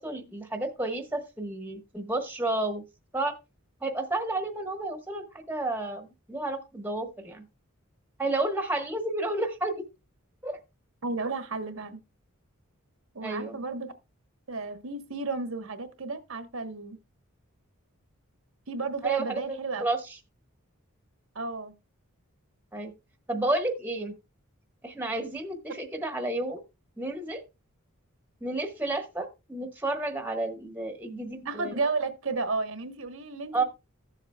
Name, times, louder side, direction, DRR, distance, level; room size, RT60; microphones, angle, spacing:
voice 1, 0.0-2.8 3.1-3.4 3.8-7.4 8.2-9.8 10.4-10.6 13.2-13.6 19.0-20.0 22.7-22.9 23.3-24.1 24.8-26.6 27.0-27.4 28.4-31.8 33.5-33.6, right 2 dB, 10° right, 1.2 m, -31 dB
voice 2, 11.0-12.0 13.1-13.9 14.5-17.0 18.7-19.8 21.3-21.7 31.4-33.6, right 3 dB, 65° right, 1.1 m, -32 dB
14.5 x 7.3 x 2.2 m
head